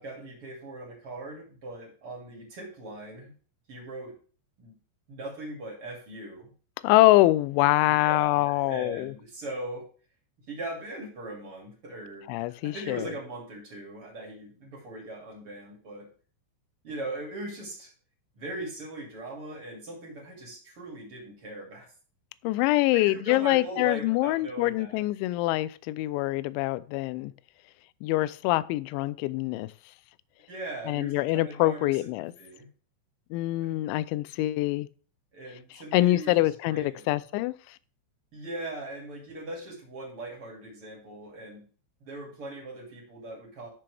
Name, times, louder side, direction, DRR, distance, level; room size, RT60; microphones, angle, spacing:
voice 1, 0.0-3.3 3.7-4.1 4.6-4.7 5.1-6.5 7.8-9.8 10.5-16.1 16.8-17.9 18.3-21.9 22.9-25.0 30.5-32.1 32.4-32.7 33.6-33.8 35.3-37.2 38.3-41.7 42.0-43.7, right 2 dB, 35° right, 2.7 m, -40 dB
voice 2, 6.8-9.1 12.3-13.1 22.4-27.3 28.0-29.7 30.9-32.3 33.3-34.9 35.9-37.8, left 18 dB, 85° left, 2.8 m, -25 dB
13.5 x 7.1 x 3.4 m
omnidirectional pair, 5.7 m